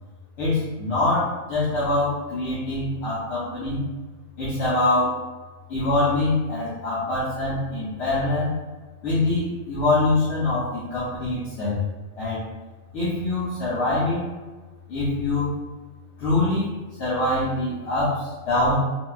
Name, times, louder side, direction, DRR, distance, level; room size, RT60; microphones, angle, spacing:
voice 1, 0.4-3.8 4.4-5.1 5.7-8.5 9.0-11.8 12.2-12.4 12.9-14.2 14.9-15.5 16.2-18.7, left 2 dB, 55° left, -10 dB, 0.9 m, -24 dB
3.7 x 2.1 x 2.4 m, 1.3 s
omnidirectional pair, 1.5 m